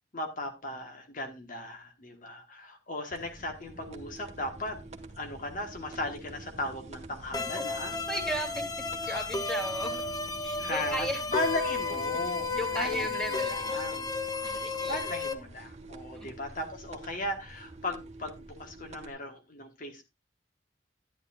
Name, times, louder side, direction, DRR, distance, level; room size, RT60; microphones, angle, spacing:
voice 1, 0.1-4.8 5.2-7.9 9.1-9.2 10.6-14.1 14.9-20.0, left 1 dB, 50° left, 4 dB, 1.4 m, -37 dB
sound 1, 3.1-19.1, right 2 dB, 40° right, 1.5 m, -47 dB
sound 2, 7.3-15.3, left 3 dB, 20° left, 0.9 m, -33 dB
voice 2, 8.1-8.7 8.9-10.0 10.4-11.2 11.9-12.0 12.5-13.8 14.4-15.0 16.1-16.3, equal, 5° left, 3 dB, 2.5 m, -35 dB
11.0 x 11.0 x 2.5 m, 0.23 s
head